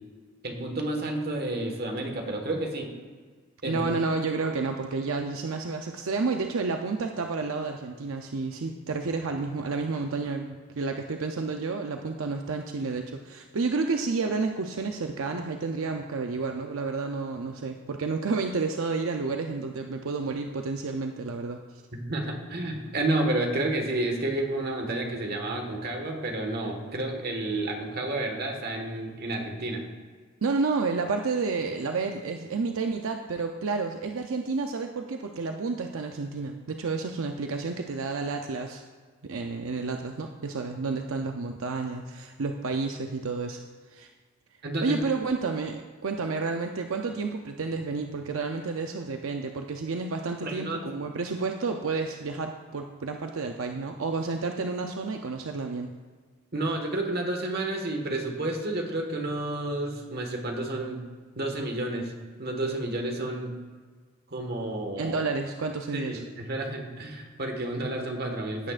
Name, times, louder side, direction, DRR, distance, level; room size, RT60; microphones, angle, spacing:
voice 1, 0.4-2.9 3.6-3.9 21.9-29.8 44.6-45.0 50.4-50.8 56.5-61.0 61.4-62.1 62.4-63.6 64.3-65.2 65.9-68.7, right 2 dB, 50° right, 2 dB, 1.6 m, -30 dB
voice 2, 3.6-21.8 30.4-38.8 39.2-43.6 43.9-44.1 44.8-56.0 65.0-66.2, right 4 dB, 85° right, 4 dB, 0.6 m, -30 dB
16.5 x 8.7 x 2.5 m, 1.5 s
head